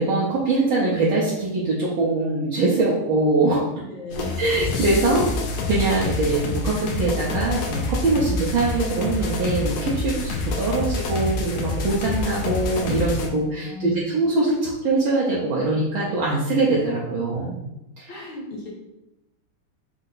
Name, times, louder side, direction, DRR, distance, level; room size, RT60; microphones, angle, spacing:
voice 1, 0.0-3.6 4.4-5.3 5.7-17.7 18.0-18.1, right 2 dB, 70° right, -6 dB, 1.5 m, -22 dB
voice 2, 3.8-4.4 5.8-5.9 13.6-14.1 18.1-18.7, left 1 dB, 60° left, -4 dB, 1.9 m, -36 dB
sound 1, 4.1-13.3, left 3 dB, 85° left, 0.8 m, -27 dB
4.3 x 2.8 x 3.8 m, 0.88 s
omnidirectional pair, 2.4 m